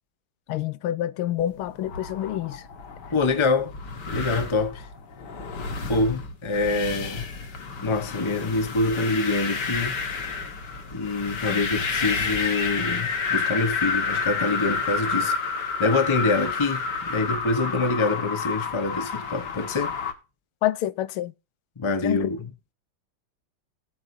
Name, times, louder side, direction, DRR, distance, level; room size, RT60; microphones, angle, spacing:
voice 1, 0.5-2.7 11.5-11.6 20.6-21.3 22.0-22.3, left 13 dB, 85° left, 1.6 m, -27 dB
sound 1, 1.6-20.1, left 4 dB, 55° left, 2.1 m, -30 dB
voice 2, 3.1-3.7 4.1-4.9 5.9-7.3 7.8-10.0 10.9-20.0 21.8-22.5, left 3 dB, 20° left, 0.8 m, -25 dB
17.5 x 8.6 x 2.7 m
omnidirectional pair, 2.3 m